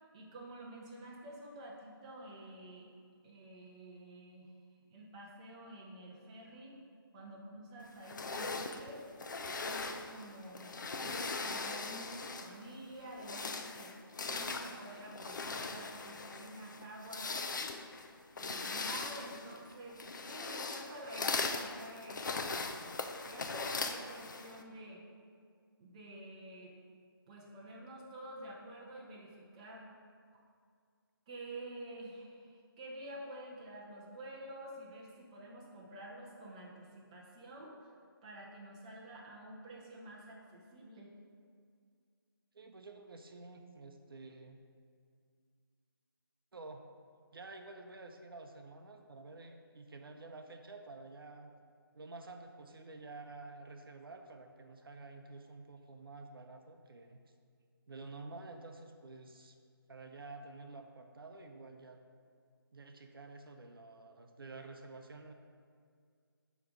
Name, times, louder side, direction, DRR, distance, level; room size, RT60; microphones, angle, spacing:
voice 1, 0.1-2.9 3.2-4.5 4.9-6.8 7.1-9.1 9.6-14.0 14.3-17.3 18.4-22.9 23.3-25.0 25.8-26.8 27.3-29.9 31.3-37.9 38.2-41.1, right 1 dB, 15° right, -3 dB, 0.6 m, -49 dB
sound 1, 8.0-12.6 13.1-24.6, left 4 dB, 50° left, 0.5 m, -40 dB
voice 2, 42.5-44.6 46.5-46.9 47.3-51.5 51.9-57.2 57.9-59.5 59.9-62.0 62.7-65.3, right 3 dB, 70° right, 4 dB, 0.6 m, -50 dB
7.5 x 3.1 x 4.9 m, 2.2 s
figure-of-eight pair, 160°, 13 cm